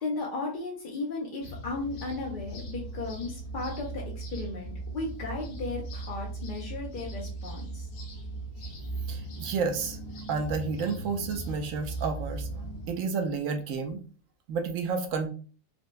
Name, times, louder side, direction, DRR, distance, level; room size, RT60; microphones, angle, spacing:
voice 1, 0.0-4.0 4.3-7.9, left 3 dB, 55° left, -3 dB, 0.5 m, -35 dB
sound 1, 1.4-12.9, right 2 dB, 85° left, 1.7 m, -38 dB
voice 2, 9.1-10.0 10.3-12.5 12.9-14.0 14.5-15.3, right 5 dB, 70° right, 6 dB, 0.8 m, -30 dB
4.4 x 2.1 x 2.5 m, 0.38 s
omnidirectional pair, 1.7 m